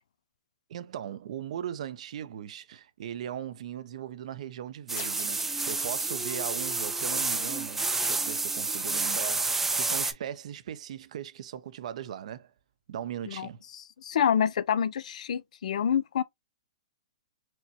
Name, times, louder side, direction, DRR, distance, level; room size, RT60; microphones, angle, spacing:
voice 1, 0.7-12.5 12.9-13.6, right 10 dB, 60° right, 0.5 m, -39 dB
sound 1, 4.9-10.1, right 3 dB, 5° right, 0.3 m, -29 dB
sound 2, 5.0-8.2, left 5 dB, 45° left, 1.1 m, -48 dB
voice 2, 13.7-16.2, left 8 dB, 70° left, 0.4 m, -27 dB
4.3 x 2.2 x 2.6 m
hypercardioid pair, 140°, 4 cm